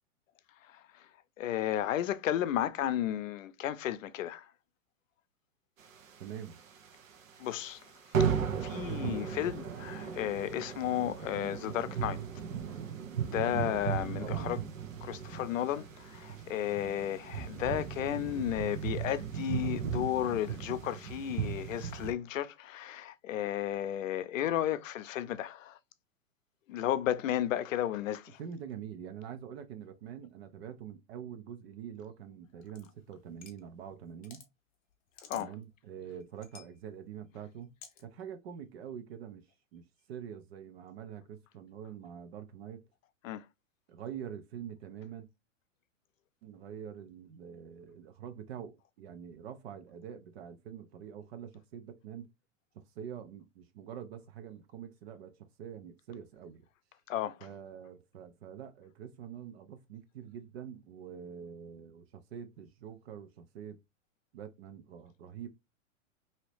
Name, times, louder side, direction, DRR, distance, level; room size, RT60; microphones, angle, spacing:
voice 1, 0.7-1.0 1.4-4.5 7.4-7.8 8.2-8.3 8.6-12.2 13.2-14.6 15.0-25.8 26.7-28.4 35.3-35.5 43.2-43.4 57.1-57.4, left 11 dB, 75° left, 0.6 m, -33 dB
sound 1, 5.9-6.9 7.2-7.4 7.7-7.9 8.1-22.1, right 7 dB, 80° right, 0.9 m, -36 dB
voice 2, 6.2-6.6 14.2-14.6 28.4-34.4 35.3-37.7 38.0-39.5 39.7-42.9 43.9-45.3 46.4-52.3 52.7-56.6 57.4-63.8 64.3-65.5, right 8 dB, 50° right, 0.6 m, -45 dB
sound 2, 32.6-33.6 34.1-34.5 34.9-35.7 36.2-36.7 37.8-38.0, left 7 dB, 20° left, 0.6 m, -52 dB
2.9 x 2.8 x 3.2 m
hypercardioid pair, 135°, 39 cm